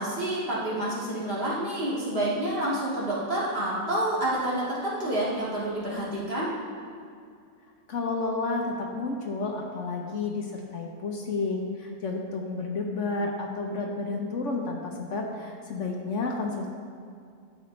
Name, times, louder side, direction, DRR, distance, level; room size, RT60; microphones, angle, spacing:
voice 1, 0.0-6.5, right 1 dB, 40° right, -8 dB, 2.3 m, -28 dB
voice 2, 7.9-16.7, left 3 dB, 60° left, 1 dB, 1.1 m, -31 dB
11.5 x 7.7 x 3.2 m, 2.2 s
omnidirectional pair, 1.5 m